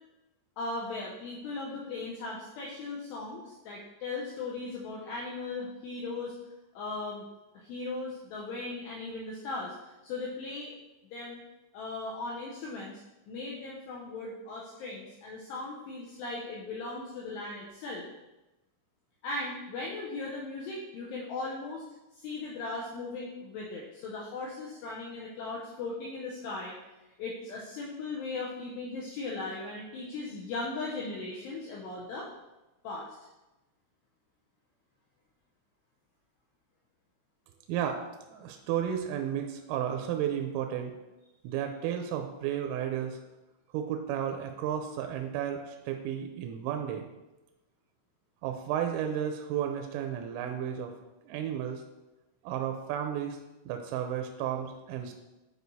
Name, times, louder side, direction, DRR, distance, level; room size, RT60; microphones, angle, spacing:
voice 1, 0.6-6.3 6.7-7.3 7.5-10.7 11.1-11.4 11.7-13.0 13.3-18.0 19.2-21.8 22.1-26.8 27.2-32.3 32.8-33.1, left 3 dB, 90° left, -3 dB, 2.4 m, -38 dB
voice 2, 37.7-38.0 38.3-40.9 41.4-43.2 43.7-47.1 48.4-50.9 51.3-51.8 52.4-53.4 53.7-55.1, right 9 dB, 90° right, 4 dB, 3.2 m, -33 dB
10.0 x 4.6 x 2.7 m, 1.0 s
omnidirectional pair, 5.8 m